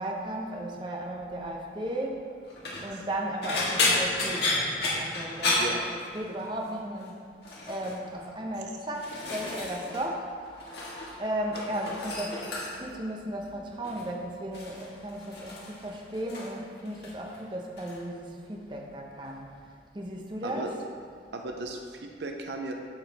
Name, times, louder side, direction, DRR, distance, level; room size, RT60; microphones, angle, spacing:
voice 1, 0.0-2.4 2.8-5.8 6.1-7.2 7.7-10.3 11.2-19.5 19.9-20.7, right 1 dB, 25° right, 0 dB, 0.8 m, -35 dB
sound 1, 2.5-2.9 3.4-6.5 6.7-7.1 7.4-8.0 8.6-10.0 10.3-11.2 11.4-13.0 13.8-14.1 14.5-16.6 16.9-17.4 17.8-18.0 19.2-19.3, left 2 dB, 65° left, 1.8 m, -31 dB
voice 2, 21.3-22.7, right 2 dB, 70° right, 3 dB, 0.6 m, -36 dB
13.0 x 4.6 x 3.4 m, 2.2 s
head